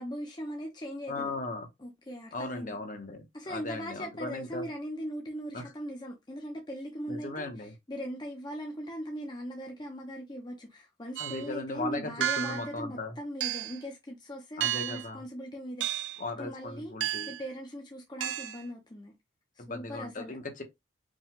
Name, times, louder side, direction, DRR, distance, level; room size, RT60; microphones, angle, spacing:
voice 1, 0.0-1.3 1.8-2.8 3.3-16.1 16.4-16.9 17.3-19.1 19.6-20.4, equal, 25° left, 0.7 m, -40 dB
voice 2, 1.1-1.7 2.3-4.7 5.5-5.6 7.1-7.7 11.2-13.2 14.6-15.2 16.2-17.3 19.6-20.6, left 2 dB, 45° left, 1.0 m, -37 dB
sound 1, 11.2-11.5 12.2-12.7 13.4-13.8 14.6-15.1 15.8-16.2 17.0-17.4 18.2-18.6, right 12 dB, 65° right, 0.3 m, -32 dB
5.1 x 2.3 x 3.7 m
head